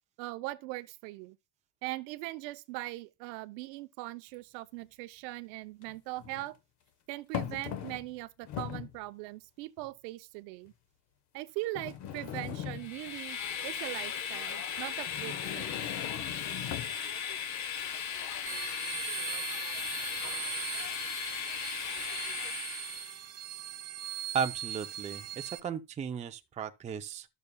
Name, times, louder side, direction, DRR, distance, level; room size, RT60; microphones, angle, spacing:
voice 1, 0.2-1.4 1.8-6.6 7.1-10.7 11.3-13.4 13.6-16.0, right 19 dB, 80° right, 0.8 m, -40 dB
sound 1, 4.3-4.4 5.8-6.5 7.3-8.2 8.4-9.0 9.8-9.9 10.7-10.8 11.8-13.2 15.1-17.0, left 10 dB, 55° left, 1.2 m, -39 dB
Train, 12.7-23.2, left 8 dB, 35° left, 0.8 m, -37 dB
sound 2, 18.5-25.6, right 12 dB, 35° right, 0.8 m, -40 dB
voice 2, 24.3-27.3, right 7 dB, 15° right, 0.4 m, -35 dB
12.0 x 6.7 x 2.2 m
supercardioid pair, 120°, 49 cm